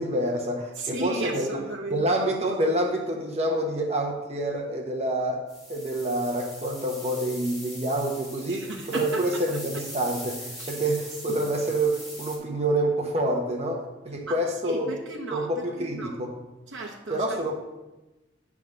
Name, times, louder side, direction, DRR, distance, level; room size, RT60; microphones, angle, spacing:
voice 1, 0.0-1.6 1.9-5.4 5.7-14.9 15.3-16.3 17.1-17.5, right 1 dB, 35° right, 0 dB, 1.0 m, -27 dB
voice 2, 0.8-2.0 8.5-9.2 10.5-10.7 14.3-14.4 14.7-15.5 15.8-16.2 16.7-17.5, right 2 dB, 80° right, -2 dB, 0.9 m, -34 dB
sound 1, 5.5-12.4, equal, ahead, 2.4 m, -41 dB
9.5 x 3.7 x 6.4 m, 1.0 s
head